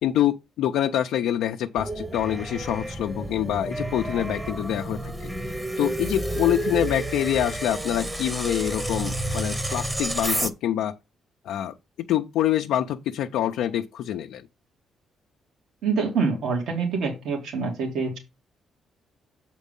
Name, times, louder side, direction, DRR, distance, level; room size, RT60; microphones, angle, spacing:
voice 1, 0.0-11.0 11.4-14.5, left 11 dB, 85° left, 0.5 m, -26 dB
sound 1, 1.8-10.5, right 1 dB, 15° right, 1.0 m, -30 dB
voice 2, 15.8-18.2, right 5 dB, 80° right, 2.7 m, -26 dB
7.2 x 4.5 x 5.3 m
cardioid pair, 90°, 0 cm